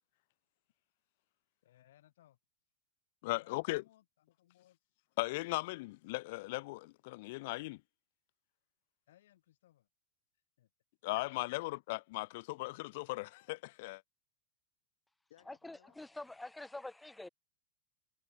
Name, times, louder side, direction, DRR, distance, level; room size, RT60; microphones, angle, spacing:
voice 1, 1.6-2.4 3.4-4.8 9.1-9.9 10.3-10.7 11.2-11.7 15.3-16.0 16.3-16.4, left 13 dB, 80° left, 5.3 m, -66 dB
voice 2, 3.2-3.8 5.2-7.8 11.0-14.0, left 22 dB, 60° left, 0.9 m, -38 dB
voice 3, 15.5-17.3, left 2 dB, 5° left, 0.4 m, -46 dB
supercardioid pair, 135°, 0 cm